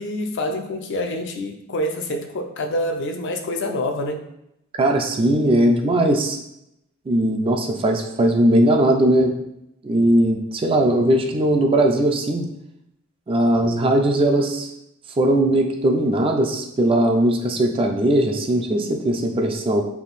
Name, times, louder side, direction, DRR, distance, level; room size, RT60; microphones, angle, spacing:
voice 1, 0.0-4.3, left 1 dB, 60° left, 4 dB, 0.5 m, -26 dB
voice 2, 4.8-6.4 7.1-9.3 9.8-12.5 13.3-14.7 15.2-19.8, right 1 dB, 25° right, 3 dB, 0.3 m, -19 dB
3.5 x 2.6 x 4.0 m, 0.81 s
head